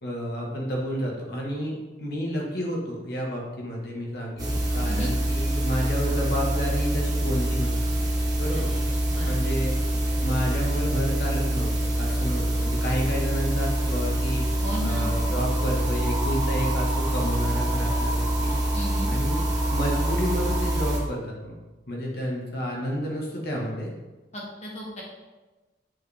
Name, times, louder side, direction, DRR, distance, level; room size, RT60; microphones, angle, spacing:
voice 1, 0.0-7.8 8.4-9.0 9.2-18.5 19.1-19.4 19.7-21.6 21.9-23.9, equal, 60° left, -2 dB, 1.6 m, -30 dB
sound 1, 4.4-21.0, right 1 dB, 20° right, 1.3 m, -25 dB
voice 2, 8.5-9.5 14.6-15.2 18.7-19.1 24.3-25.0, left 1 dB, 40° left, -4 dB, 1.9 m, -35 dB
7.5 x 4.9 x 3.4 m, 1.2 s
head